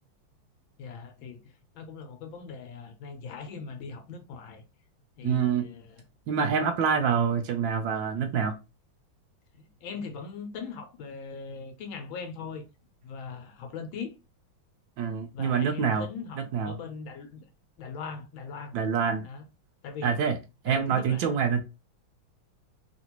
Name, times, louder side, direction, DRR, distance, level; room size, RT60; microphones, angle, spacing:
voice 1, 0.8-1.4 1.7-4.6 5.2-6.0 9.5-12.6 13.0-14.1 15.3-17.4 17.8-18.7 19.2-19.4 19.8-20.2 20.7-21.3, left 5 dB, 75° left, 1.5 m, -40 dB
voice 2, 5.2-5.7 6.3-8.6 15.0-16.1 16.4-16.7 18.7-19.3 20.0-20.4 20.6-21.6, right 6 dB, 75° right, 1.2 m, -26 dB
3.8 x 2.6 x 2.9 m
omnidirectional pair, 2.2 m